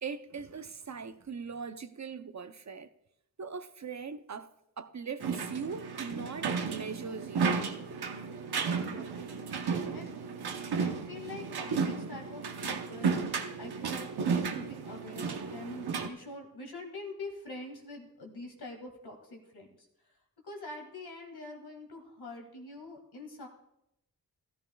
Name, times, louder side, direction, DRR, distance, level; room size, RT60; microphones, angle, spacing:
voice 1, 0.0-2.9 3.4-4.5 4.8-7.5, right 5 dB, 45° right, 0.7 m, -40 dB
sound 1, 5.2-16.1, right 5 dB, 85° right, 0.9 m, -33 dB
voice 2, 8.8-9.5 9.9-10.1 10.8-13.3 13.6-19.9 20.4-23.5, left 2 dB, 85° left, 2.2 m, -45 dB
14.0 x 13.0 x 2.3 m
cardioid pair, 45°, 38 cm